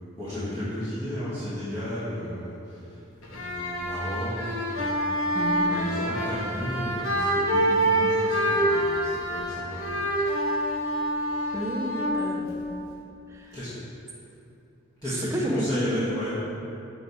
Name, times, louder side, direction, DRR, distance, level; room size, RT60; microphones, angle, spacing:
voice 1, 0.2-2.8 3.2-5.0 5.7-10.0 13.5-13.7 15.0-16.4, left 1 dB, 20° left, -14 dB, 1.2 m, -33 dB
sound 1, 3.2-13.0, right 1 dB, 75° left, 0.8 m, -26 dB
voice 2, 5.3-5.9 11.5-12.6 13.3-13.6 15.1-16.1, right 1 dB, 15° right, -3 dB, 0.7 m, -31 dB
6.3 x 4.9 x 4.1 m, 2.7 s
head